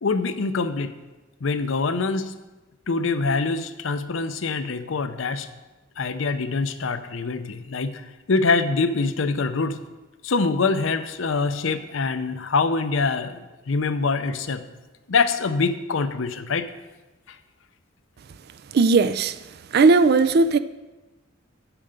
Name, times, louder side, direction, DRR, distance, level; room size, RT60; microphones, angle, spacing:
voice 1, 0.0-0.9 1.4-2.3 2.9-5.5 6.0-8.0 8.3-9.8 10.2-14.6 15.1-16.7 17.3-17.4, left 4 dB, 70° left, 0.6 m, -24 dB
voice 2, 18.7-19.3 19.7-20.6, right 4 dB, 50° right, 0.4 m, -17 dB
8.9 x 7.8 x 5.2 m
head